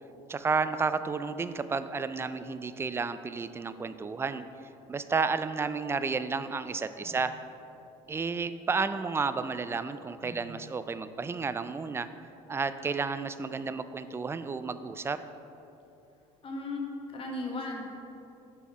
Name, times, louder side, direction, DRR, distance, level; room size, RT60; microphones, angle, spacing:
voice 1, 0.3-4.4 4.9-7.3 8.1-12.1 12.5-15.2, right 4 dB, 15° right, 12 dB, 0.3 m, -31 dB
voice 2, 16.4-16.8 17.1-17.8, left 2 dB, 40° left, 0 dB, 1.4 m, -37 dB
6.2 x 5.5 x 4.8 m, 2.9 s
supercardioid pair, 90°, 15 cm